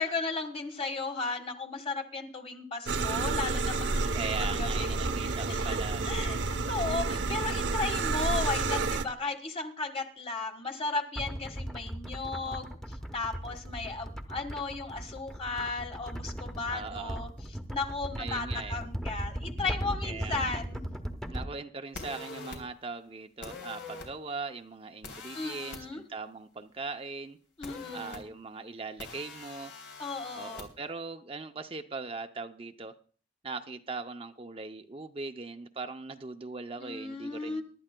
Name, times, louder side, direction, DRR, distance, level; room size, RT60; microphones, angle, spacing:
voice 1, 0.0-5.8 6.0-17.3 17.7-20.8 25.3-26.0 27.6-28.2 30.0-30.6 36.8-37.6, left 3 dB, 35° left, 1.6 m, -35 dB
sound 1, 2.8-9.0, right 3 dB, 70° right, 0.8 m, -30 dB
voice 2, 4.1-6.3 16.7-17.2 18.2-18.8 20.0-20.6 21.3-27.4 27.9-29.7 30.3-32.9 33.4-37.6, right 4 dB, 30° right, 0.5 m, -40 dB
sound 2, 11.2-21.4, equal, 5° left, 0.9 m, -38 dB
sound 3, 21.9-22.6 23.4-24.1 25.0-25.8 27.6-28.2 29.0-30.6, left 3 dB, 80° left, 3.3 m, -43 dB
23.5 x 12.0 x 2.2 m
head